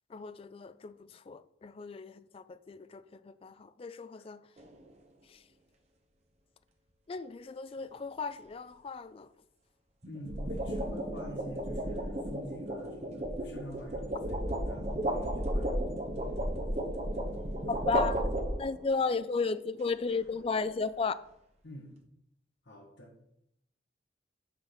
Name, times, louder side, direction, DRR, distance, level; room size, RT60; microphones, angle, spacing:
voice 1, 0.1-4.5 5.3-5.4 7.1-9.3 17.7-18.3 18.6-21.2, left 4 dB, 30° left, 0.3 m, -35 dB
sound 1, 4.6-4.9 10.0-18.9, right 1 dB, 35° right, 0.9 m, -33 dB
voice 2, 10.0-16.0 21.6-21.9 22.6-23.1, equal, 70° left, 1.6 m, -48 dB
5.9 x 5.8 x 4.8 m
head